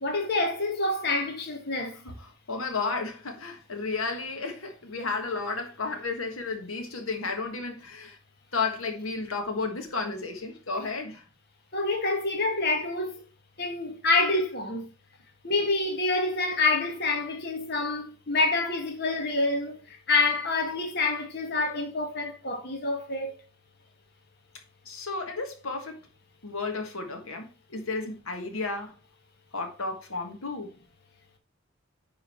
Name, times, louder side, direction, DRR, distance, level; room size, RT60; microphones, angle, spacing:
voice 1, 0.0-2.0 11.7-13.2 13.6-14.9 15.4-23.4, left 3 dB, 50° left, 1.4 m, -27 dB
voice 2, 2.0-8.2 8.5-11.2 24.8-26.0 26.4-28.9 29.5-30.7, left 4 dB, 80° left, 1.5 m, -33 dB
10.0 x 3.7 x 4.3 m
head